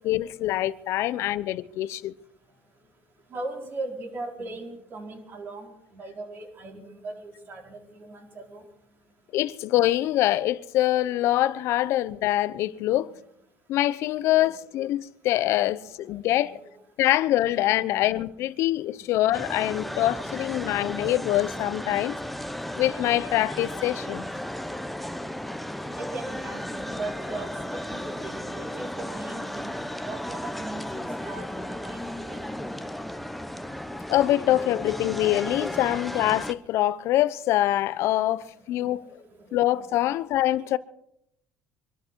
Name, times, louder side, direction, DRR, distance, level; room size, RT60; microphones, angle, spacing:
voice 1, 0.0-2.1 9.3-13.1 13.7-16.6 17.0-22.2 22.8-24.3 34.1-39.1 39.5-40.8, left 14 dB, 65° left, 0.9 m, -24 dB
voice 2, 3.3-8.6 11.8-11.9 12.9-13.0 14.4-14.5 15.6-16.8 17.9-18.1 18.4-18.5 19.2-19.3 19.6-19.7 20.2-20.3 20.6-20.7 22.0-22.2 25.9-32.4 38.7-39.7, right 2 dB, 45° right, 4.9 m, -40 dB
sound 1, 19.3-36.5, left 1 dB, ahead, 1.0 m, -34 dB
24.5 x 12.5 x 4.7 m
cardioid pair, 110°, 5 cm